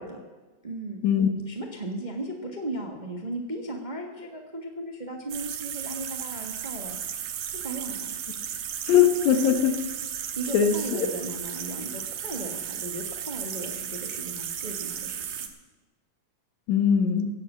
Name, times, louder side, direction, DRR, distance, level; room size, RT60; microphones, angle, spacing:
voice 1, 0.6-1.0 1.5-7.2 7.5-8.2 9.3-9.5 10.3-15.4, right 2 dB, 25° right, 1 dB, 1.0 m, -36 dB
sound 1, 5.3-15.5, right 9 dB, 70° right, 2.3 m, -35 dB
voice 2, 8.9-9.7 10.5-11.0 16.7-17.3, left 8 dB, 75° left, 6 dB, 2.6 m, -21 dB
17.0 x 7.8 x 8.2 m, 1.2 s
omnidirectional pair, 3.4 m